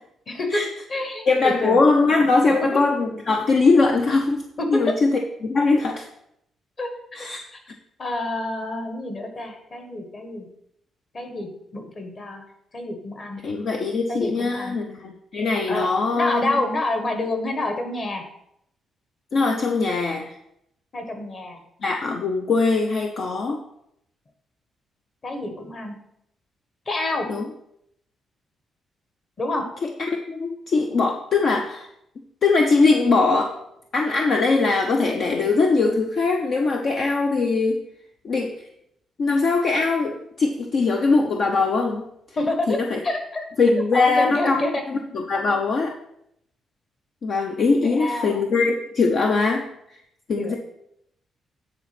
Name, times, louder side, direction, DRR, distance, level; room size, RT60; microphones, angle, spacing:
voice 1, 0.3-0.6 0.9-1.8 2.5-2.6 4.6-4.9 6.8-7.2 7.5-7.6 8.0-10.5 11.1-12.4 12.7-13.4 14.1-14.8 15.7-15.9 16.1-18.2 20.9-21.6 25.2-26.0 26.8-27.3 29.4-29.6 42.4-43.5 43.9-44.8 47.8-48.4 50.4-50.6, left 2 dB, 35° left, 4 dB, 1.6 m, -28 dB
voice 2, 1.3-4.4 4.7-6.1 7.1-7.4 13.4-16.6 19.3-20.3 21.8-23.6 27.3-27.4 30.0-31.9 32.4-33.6 33.9-37.8 38.2-38.5 39.2-42.0 42.7-43.0 43.6-44.6 44.9-45.9 47.2-49.7 50.3-50.5, left 3 dB, 50° left, 3 dB, 0.8 m, -21 dB
9.8 x 4.2 x 6.0 m, 0.77 s
cardioid pair, 140°, 0 cm